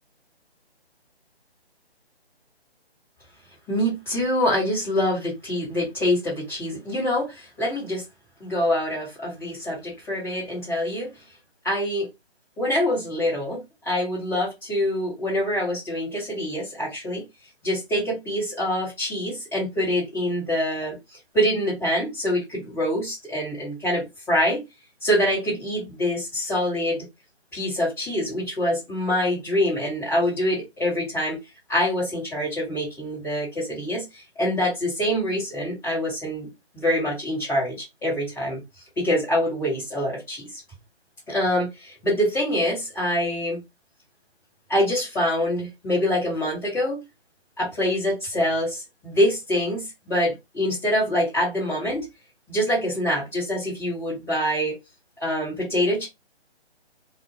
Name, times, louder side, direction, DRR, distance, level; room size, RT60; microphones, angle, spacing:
voice 1, 3.7-8.0 8.4-11.1 11.6-12.1 12.6-17.2 17.6-21.0 21.3-24.6 25.0-27.0 27.5-31.4 31.7-36.5 36.7-38.6 39.0-40.6 41.3-43.6 44.7-47.0 47.6-52.1 52.5-54.7 55.2-56.1, left 1 dB, 10° left, 1.3 m, -25 dB
2.5 x 2.3 x 2.8 m
hypercardioid pair, 170°, 32 cm